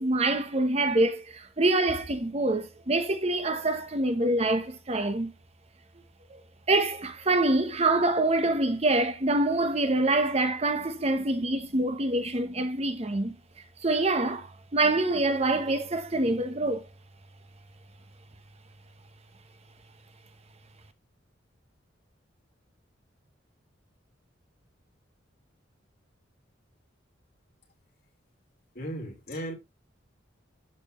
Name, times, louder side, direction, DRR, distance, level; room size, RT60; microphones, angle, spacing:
voice 1, 0.0-5.3 6.3-6.4 6.7-13.3 13.8-16.8, right 2 dB, 35° right, 0.9 m, -25 dB
voice 2, 28.7-29.5, equal, 55° left, 3.9 m, -36 dB
12.0 x 4.3 x 3.0 m
head